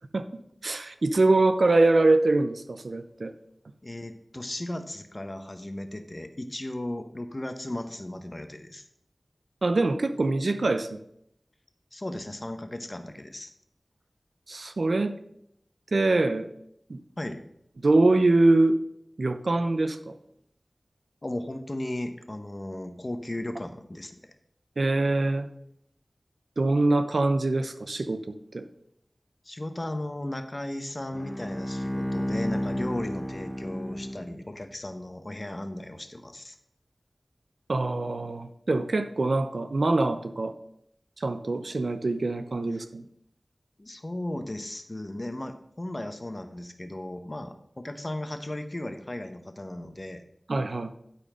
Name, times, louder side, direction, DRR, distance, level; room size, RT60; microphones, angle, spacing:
voice 1, 0.6-3.3 9.6-11.0 14.5-15.2 15.9-16.5 16.9-17.0 17.8-18.8 19.2-20.2 24.8-25.5 26.6-28.6 37.7-40.5 41.2-43.1 50.5-50.9, right 2 dB, 75° right, 10 dB, 0.7 m, -24 dB
voice 2, 3.8-8.8 11.9-13.5 17.2-17.4 21.2-24.3 29.4-36.6 42.7-42.8 43.8-50.2, left 1 dB, 35° left, 8 dB, 1.0 m, -36 dB
Bowed string instrument, 31.1-34.7, equal, 10° left, 0.7 m, -32 dB
11.5 x 4.3 x 5.0 m, 0.74 s
wide cardioid pair, 45°, 0 cm